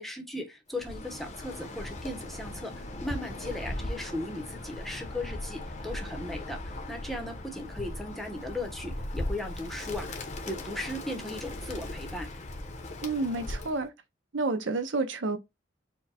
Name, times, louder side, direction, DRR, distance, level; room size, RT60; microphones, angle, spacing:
voice 1, 0.0-12.3, left 1 dB, ahead, 0.8 m, -37 dB
Bird, 0.7-13.9, left 1 dB, 40° left, 0.8 m, -38 dB
voice 2, 13.0-13.9 14.3-15.4, right 3 dB, 75° right, 0.7 m, -29 dB
4.5 x 2.2 x 4.2 m
head